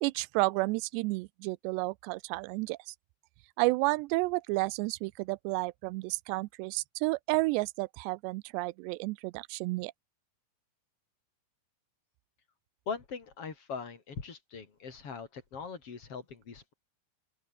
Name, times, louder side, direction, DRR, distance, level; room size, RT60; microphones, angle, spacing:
voice 1, 0.0-2.9 3.6-9.9, right 23 dB, 85° right, 2.8 m, -31 dB
voice 2, 12.9-16.7, left 5 dB, 35° left, 3.7 m, -41 dB
open air
omnidirectional pair, 4.9 m